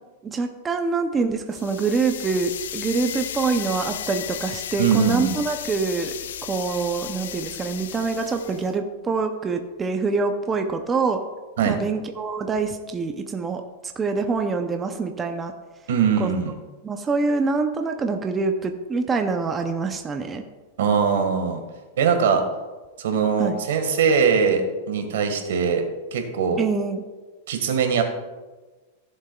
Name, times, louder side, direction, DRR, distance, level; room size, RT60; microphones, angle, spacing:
voice 1, 0.2-6.1 6.4-11.2 11.6-15.5 16.2-16.3 16.8-20.4 23.4-23.6 26.6-27.0, right 4 dB, 15° right, 5 dB, 0.5 m, -25 dB
sound 1, 1.5-8.7, left 10 dB, 85° left, 0.4 m, -34 dB
voice 2, 4.8-5.4 11.6-11.8 15.9-16.5 20.8-21.6 22.0-22.4 23.0-25.8 26.1-26.6 27.5-28.0, right 6 dB, 80° right, 5 dB, 1.5 m, -21 dB
14.5 x 7.3 x 2.3 m, 1.3 s
supercardioid pair, 160°, 0 cm